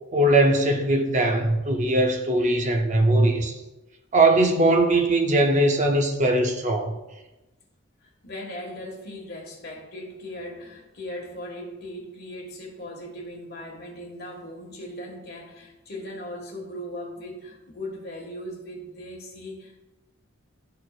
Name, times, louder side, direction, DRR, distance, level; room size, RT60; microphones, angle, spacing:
voice 1, 0.1-3.5 4.1-6.9, right 1 dB, 35° right, 0.7 m, -20 dB
voice 2, 8.0-19.8, left 1 dB, 50° left, 1.7 m, -38 dB
12.5 x 4.3 x 2.4 m
head